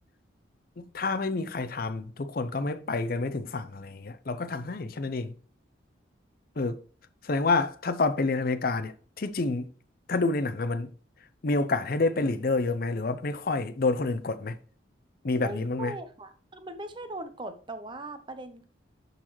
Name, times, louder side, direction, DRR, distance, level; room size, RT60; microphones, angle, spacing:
voice 1, 0.8-5.3 6.6-6.8 7.2-9.7 10.1-10.9 11.4-14.5 15.2-15.9, left 3 dB, 50° left, 0.6 m, -28 dB
voice 2, 15.3-18.6, right 2 dB, 25° right, 0.7 m, -40 dB
10.5 x 4.0 x 3.1 m
head